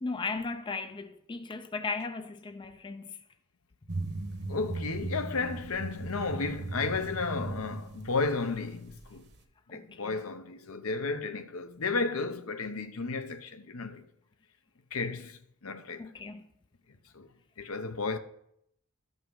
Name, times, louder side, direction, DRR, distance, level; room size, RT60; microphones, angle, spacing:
voice 1, 0.0-3.2 9.7-10.2 16.0-16.5, left 4 dB, 20° left, 0.4 m, -37 dB
sound 1, 3.9-9.4, right 2 dB, 50° right, 1.1 m, -38 dB
voice 2, 4.5-9.2 9.7-14.0 14.9-16.1 17.1-17.3 17.6-18.2, left 4 dB, 70° left, 0.8 m, -33 dB
12.5 x 5.4 x 5.5 m
head